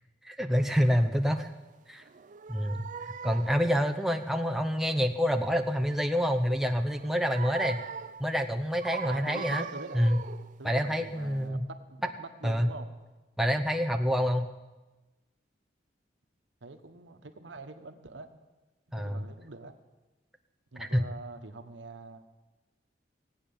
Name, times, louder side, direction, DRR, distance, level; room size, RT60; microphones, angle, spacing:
voice 1, 0.2-1.5 1.9-2.0 2.5-2.9 3.2-7.8 8.2-9.7 9.9-10.2 10.6-11.7 12.4-12.7 13.4-14.5 18.9-19.2 20.8-21.0, equal, ahead, 5 dB, 0.7 m, -27 dB
sound 1, 2.0-3.6 6.8-8.3 8.8-10.6 11.1-11.3, right 6 dB, 45° right, 0.4 m, -40 dB
voice 2, 9.0-10.1 10.6-12.9 16.6-18.3 18.9-19.8 20.7-22.2, right 2 dB, 80° right, 7 dB, 1.1 m, -44 dB
17.0 x 8.8 x 7.0 m, 1.2 s
head